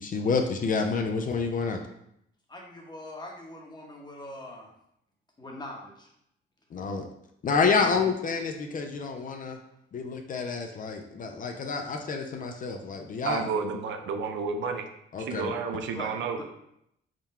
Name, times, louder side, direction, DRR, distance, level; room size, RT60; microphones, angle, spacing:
voice 1, 0.0-1.8 6.7-7.1 7.4-9.6 9.9-13.5 15.1-15.5, left 5 dB, 45° left, 4 dB, 0.5 m, -28 dB
voice 2, 2.5-4.7 5.4-6.1 7.8-8.0 15.9-16.4, left 1 dB, 20° left, 0 dB, 1.0 m, -42 dB
voice 3, 13.2-14.8 15.2-16.4, right 5 dB, 70° right, 5 dB, 0.5 m, -31 dB
3.7 x 2.3 x 4.2 m, 0.76 s
cardioid pair, 90°, 20 cm